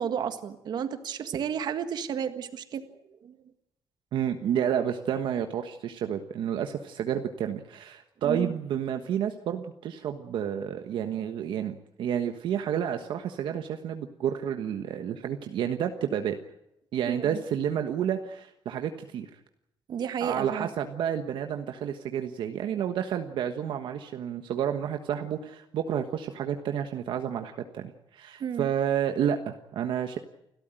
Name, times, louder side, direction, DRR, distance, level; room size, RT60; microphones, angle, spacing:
voice 1, 0.0-2.9 3.2-3.4 8.2-8.5 17.1-17.4 19.9-20.7 28.4-28.7, right 8 dB, 55° right, 9 dB, 1.7 m, -32 dB
voice 2, 4.1-16.4 16.9-19.3 20.2-30.2, right 9 dB, 75° right, 6 dB, 1.3 m, -30 dB
29.5 x 13.0 x 9.0 m, 0.85 s
cardioid pair, 155°, 8 cm